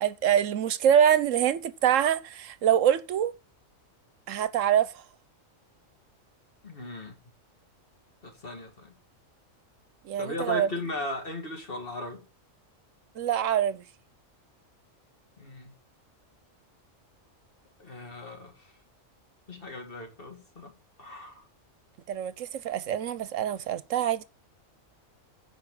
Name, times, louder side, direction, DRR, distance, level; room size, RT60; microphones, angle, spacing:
voice 1, 0.0-3.3 4.3-4.9 10.0-10.7 13.2-13.8 22.1-24.2, right 9 dB, 75° right, 1.0 m, -25 dB
voice 2, 6.6-7.2 8.2-8.9 10.2-12.3 15.4-15.7 17.8-18.7 19.5-20.7 21.0-21.4, left 1 dB, 45° left, 2.2 m, -37 dB
15.5 x 5.2 x 3.7 m
omnidirectional pair, 1.4 m